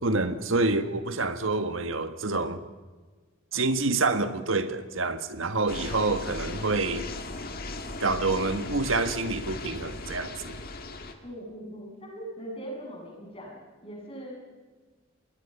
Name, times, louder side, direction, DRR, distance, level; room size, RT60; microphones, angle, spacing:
voice 1, 0.0-2.6 3.5-7.1 8.0-10.6, right 3 dB, 75° right, 1.6 m, -27 dB
sound 1, 5.7-11.1, left 2 dB, 45° left, 1.9 m, -37 dB
voice 2, 11.2-14.4, right 1 dB, 30° left, 7.8 m, -40 dB
26.5 x 20.5 x 5.6 m
head